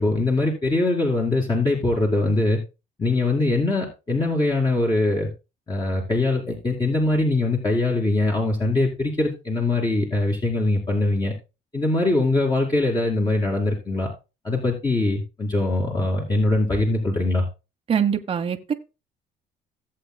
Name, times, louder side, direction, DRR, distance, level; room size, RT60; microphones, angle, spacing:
voice 1, 0.0-2.6 3.0-5.3 5.7-11.3 11.7-14.1 14.4-17.4, left 2 dB, 25° left, 2.4 m, -22 dB
voice 2, 17.9-18.7, right 7 dB, 35° right, 0.9 m, -23 dB
17.0 x 7.7 x 2.2 m
cardioid pair, 110°, 17 cm